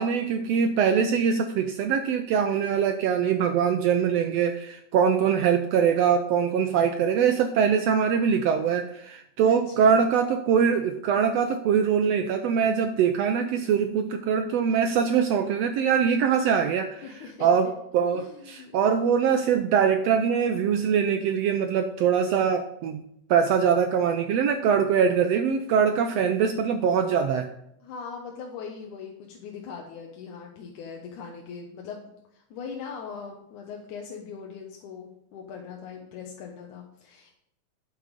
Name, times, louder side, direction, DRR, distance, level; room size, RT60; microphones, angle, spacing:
voice 1, 0.0-17.0 17.4-23.0 23.3-27.5, right 7 dB, 80° right, 6 dB, 1.6 m, -23 dB
voice 2, 9.4-10.1 17.0-17.5 18.1-19.1 27.8-32.1 32.3-37.4, left 6 dB, 85° left, 1 dB, 2.6 m, -40 dB
12.0 x 6.8 x 5.2 m, 0.78 s
omnidirectional pair, 3.4 m